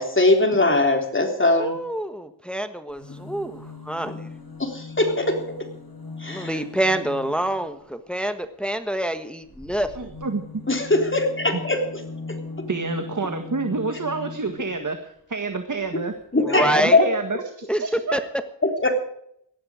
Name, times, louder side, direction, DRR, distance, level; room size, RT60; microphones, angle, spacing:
voice 1, 0.0-1.8 3.1-3.2 4.6-5.4 6.2-6.6 10.7-11.8 16.3-17.1 18.6-18.9, left 2 dB, 25° left, 3 dB, 3.6 m, -20 dB
voice 2, 1.6-4.2 6.3-9.9 16.4-17.0 17.7-17.8 18.1-18.2, right 1 dB, ahead, 9 dB, 1.3 m, -26 dB
sound 1, 2.9-7.8 9.4-14.9 15.8-15.9 16.1-16.2, left 3 dB, 50° left, 6.7 m, -39 dB
voice 3, 10.0-10.6 12.7-16.1 16.6-18.2, right 3 dB, 45° right, 6 dB, 1.8 m, -28 dB
18.0 x 13.0 x 5.0 m, 0.72 s
wide cardioid pair, 70°, 44 cm